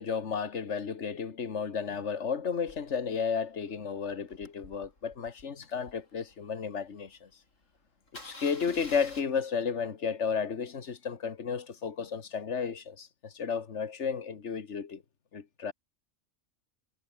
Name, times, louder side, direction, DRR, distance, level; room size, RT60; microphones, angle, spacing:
voice 1, 0.0-7.3 8.2-15.0 15.3-15.7, left 6 dB, 65° left, 1.9 m, -33 dB
Engine starting, 2.7-6.9 7.3-7.4 7.6-7.8 8.1-9.2, left 2 dB, 80° left, 6.0 m, -50 dB
omnidirectional pair, 1.3 m